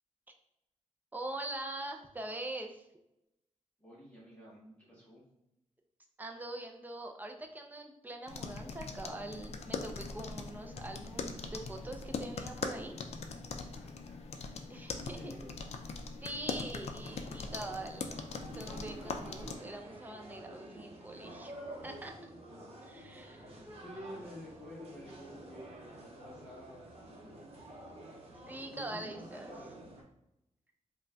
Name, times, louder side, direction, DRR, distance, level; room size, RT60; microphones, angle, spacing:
voice 1, 1.1-2.8 6.2-13.0 14.7-15.4 16.2-21.5 21.8-22.1 22.9-23.4 23.7-23.8 28.5-29.5, right 1 dB, 15° right, 3 dB, 0.4 m, -43 dB
voice 2, 3.8-5.2 13.7-15.5 22.5-23.0 23.3-27.5 28.7-29.9, equal, 10° left, -7 dB, 0.7 m, -51 dB
sound 1, 8.3-19.5, left 4 dB, 55° left, 0.4 m, -41 dB
sound 2, 17.0-30.0, right 1 dB, 50° right, 0.8 m, -50 dB
5.3 x 2.2 x 2.6 m, 0.87 s
wide cardioid pair, 175°, 13 cm